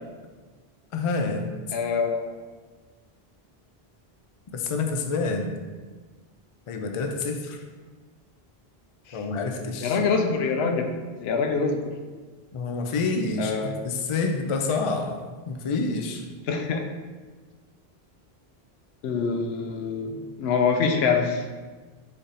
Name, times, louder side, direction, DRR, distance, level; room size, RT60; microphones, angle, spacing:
voice 1, 0.9-1.5 4.5-5.5 6.7-7.6 9.1-10.0 12.5-15.2 15.5-16.2, left 3 dB, 50° left, 4 dB, 0.4 m, -28 dB
voice 2, 1.7-2.3 9.1-9.2 9.8-10.9 11.2-11.9 13.4-13.7 16.5-16.8 19.0-21.4, left 5 dB, 80° left, 4 dB, 0.8 m, -25 dB
4.1 x 3.3 x 3.9 m, 1.4 s
omnidirectional pair, 1.0 m